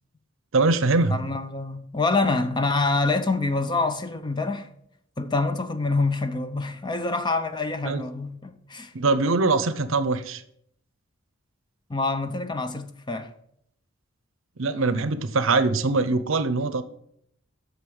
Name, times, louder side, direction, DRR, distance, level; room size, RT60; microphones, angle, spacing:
voice 1, 0.5-1.2 7.8-8.0 8.9-10.4 14.6-16.8, right 3 dB, 70° right, 0.7 m, -22 dB
voice 2, 1.1-4.7 5.2-8.9 11.9-13.3, left 3 dB, 20° left, 0.6 m, -26 dB
8.1 x 6.5 x 7.0 m
head